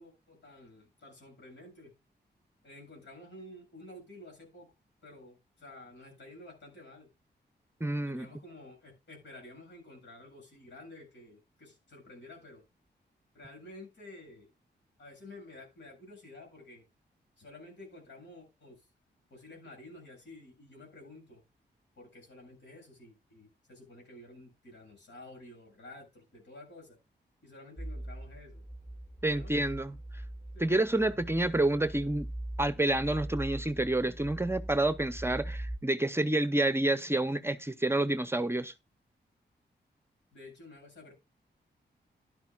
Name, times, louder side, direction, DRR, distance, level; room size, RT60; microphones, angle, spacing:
voice 1, 0.0-1.9 2.6-4.7 5.0-7.1 8.0-12.6 13.3-14.5 15.0-16.8 17.4-18.8 19.3-21.4 22.0-27.0 27.4-28.6 29.3-29.5 30.5-30.8 40.3-41.1, left 2 dB, 80° left, 7.5 m, -51 dB
voice 2, 7.8-8.3 29.2-30.0 30.6-32.3 32.6-38.7, right 2 dB, 15° right, 0.7 m, -28 dB
sound 1, 27.8-35.8, right 1 dB, 10° left, 1.7 m, -41 dB
12.0 x 11.5 x 2.4 m
cardioid pair, 85°, 18 cm